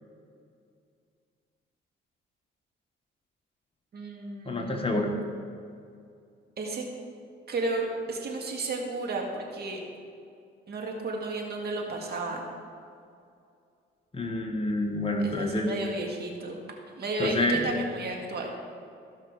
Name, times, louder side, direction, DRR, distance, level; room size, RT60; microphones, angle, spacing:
voice 1, 3.9-5.0 6.6-6.8 7.5-9.8 10.7-12.5 15.2-16.6 17.0-18.5, right 3 dB, 55° right, 1 dB, 1.9 m, -33 dB
voice 2, 4.4-5.1 14.1-15.7 17.2-17.6, left 1 dB, 30° left, 2 dB, 1.4 m, -27 dB
14.5 x 5.8 x 4.7 m, 2.4 s
cardioid pair, 90°, 20 cm